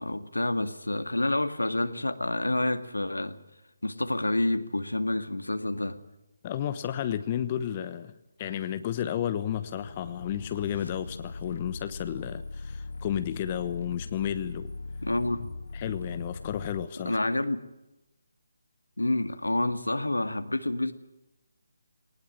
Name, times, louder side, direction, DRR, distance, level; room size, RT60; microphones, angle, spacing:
voice 1, 0.0-3.4 3.8-6.0 15.0-15.4 17.0-17.6 19.0-20.9, left 1 dB, 90° left, 8 dB, 2.2 m, -28 dB
voice 2, 6.4-14.7 15.7-17.2, left 10 dB, 30° left, 11 dB, 1.1 m, -32 dB
sound 1, 9.5-16.9, left 3 dB, 65° left, 0.8 m, -39 dB
20.5 x 19.0 x 8.9 m, 0.95 s
figure-of-eight pair, 150°, 0 cm